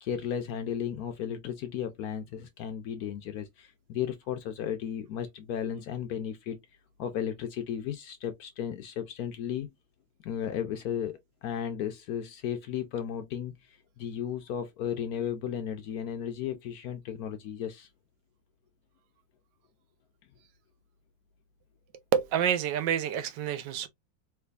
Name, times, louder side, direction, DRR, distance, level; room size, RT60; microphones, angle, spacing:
voice 1, 0.0-6.6 7.0-9.7 10.2-17.9, left 9 dB, 75° left, 0.8 m, -34 dB
voice 2, 22.1-23.9, right 8 dB, 75° right, 1.2 m, -28 dB
3.4 x 3.2 x 2.2 m
omnidirectional pair, 2.1 m